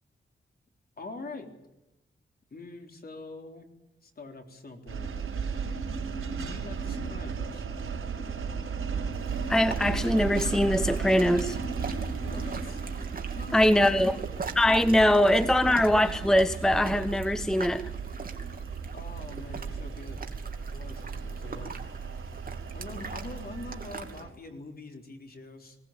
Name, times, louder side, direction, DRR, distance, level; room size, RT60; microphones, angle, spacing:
voice 1, 1.0-1.5 2.5-3.7 4.0-5.1 6.4-7.7 12.2-12.8 13.3-14.3 15.2-15.9 18.9-20.3 20.7-21.9 22.4-25.8, left 3 dB, 45° left, 3.8 m, -44 dB
sound 1, 4.9-24.3, right 5 dB, 85° right, 4.4 m, -35 dB
sound 2, 9.1-24.2, right 4 dB, 45° right, 2.6 m, -43 dB
voice 2, 9.5-11.6 13.5-14.2 14.6-17.9, left 1 dB, 5° left, 0.7 m, -22 dB
20.5 x 18.5 x 8.8 m
wide cardioid pair, 105°, 21 cm